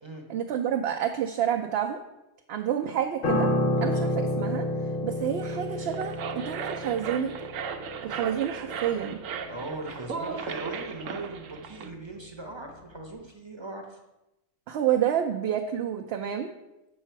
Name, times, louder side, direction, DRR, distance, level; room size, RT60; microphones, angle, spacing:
voice 1, 0.3-2.0 2.5-3.5 3.8-4.7 5.0-7.3 8.0-9.2 14.7-16.5, right 9 dB, 65° right, 4 dB, 0.7 m, -29 dB
Piano, 3.2-12.6 12.9-13.1, left 1 dB, 80° left, 1.5 m, -31 dB
sound 1, 5.7-11.9, right 6 dB, 90° right, 1.0 m, -37 dB
voice 2, 9.5-14.0, right 2 dB, 25° right, 3 dB, 0.8 m, -39 dB
7.4 x 5.6 x 4.5 m, 0.96 s
omnidirectional pair, 1.3 m